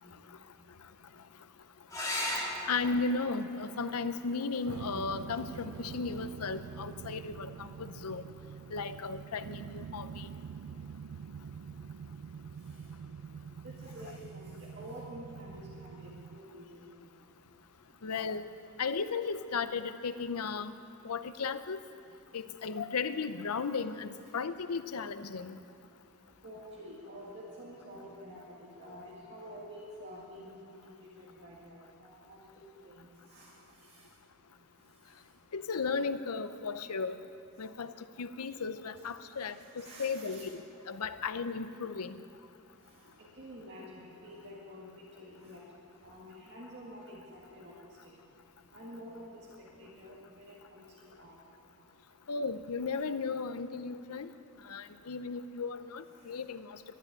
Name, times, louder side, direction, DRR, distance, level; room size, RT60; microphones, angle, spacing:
sound 1, 1.9-6.9 8.8-9.4 12.9-13.0 13.3-13.4, left 1 dB, 15° left, 2.7 m, -41 dB
voice 1, 2.7-8.2 8.7-10.3 18.0-18.5 18.8-20.7 21.0-21.8 22.3-25.6 35.5-37.2 37.6-37.9 38.2-42.2 52.3-54.3 54.7-56.8, left 4 dB, 90° left, 11 dB, 0.7 m, -35 dB
sound 2, 4.7-16.4, right 6 dB, 80° right, 0.4 m, -45 dB
voice 2, 13.6-17.1 26.4-33.5 33.9-34.0 39.6-40.5 43.2-45.6 46.0-47.7 48.7-51.3, equal, 50° right, -5 dB, 2.1 m, -49 dB
12.0 x 11.5 x 9.9 m, 2.6 s
head